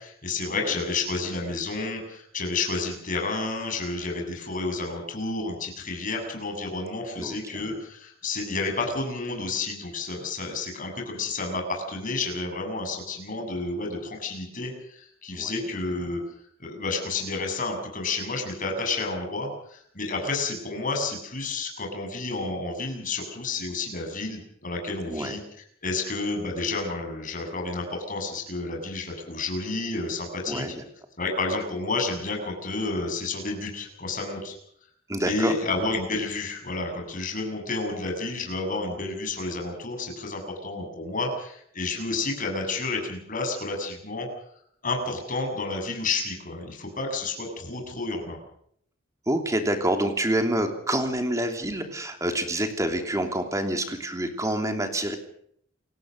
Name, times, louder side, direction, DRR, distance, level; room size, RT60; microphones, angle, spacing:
voice 1, 0.0-16.2 16.6-25.4 25.8-30.6 31.2-34.5 35.3-44.3 44.8-48.4, left 3 dB, 45° left, 2 dB, 7.2 m, -30 dB
voice 2, 25.1-25.4 30.5-30.8 35.1-35.6 49.3-55.2, right 1 dB, 15° right, 5 dB, 3.0 m, -27 dB
28.0 x 17.5 x 6.5 m, 0.68 s
head